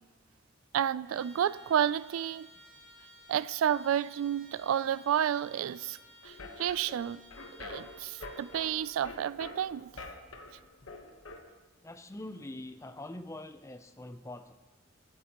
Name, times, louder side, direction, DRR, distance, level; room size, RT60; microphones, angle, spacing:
voice 1, 0.7-2.5 3.3-6.0 6.2-7.2 7.6-9.9, right 9 dB, 90° right, 0.3 m, -30 dB
Trumpet, 1.0-9.1, equal, 70° right, 3.7 m, -56 dB
sound 1, 6.2-11.4, left 2 dB, 85° left, 1.1 m, -46 dB
voice 2, 11.8-14.5, left 1 dB, 15° left, 0.4 m, -44 dB
22.5 x 9.3 x 2.9 m
head